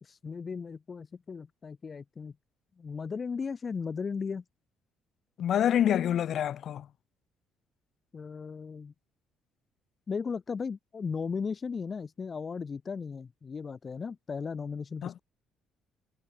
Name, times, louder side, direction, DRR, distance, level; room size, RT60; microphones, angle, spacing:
voice 1, 0.0-2.3 2.8-4.4 8.1-8.9 10.1-15.2, left 5 dB, 40° left, 3.6 m, -36 dB
voice 2, 5.4-6.9 15.0-15.1, left 10 dB, 60° left, 0.4 m, -26 dB
supercardioid pair, 70°, 0 cm